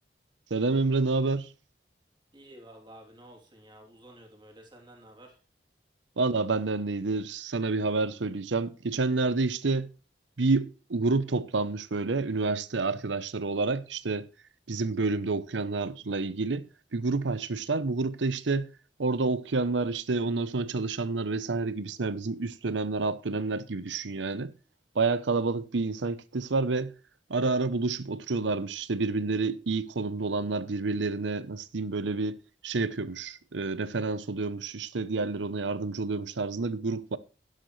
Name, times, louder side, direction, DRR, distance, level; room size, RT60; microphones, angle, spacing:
voice 1, 0.5-1.5 6.2-9.9 10.4-14.3 14.7-18.7 19.0-24.5 24.9-26.9 27.3-32.4 32.6-37.2, right 3 dB, 85° right, 0.8 m, -29 dB
voice 2, 2.3-5.4, right 1 dB, 25° right, 3.1 m, -51 dB
11.5 x 11.5 x 3.2 m
head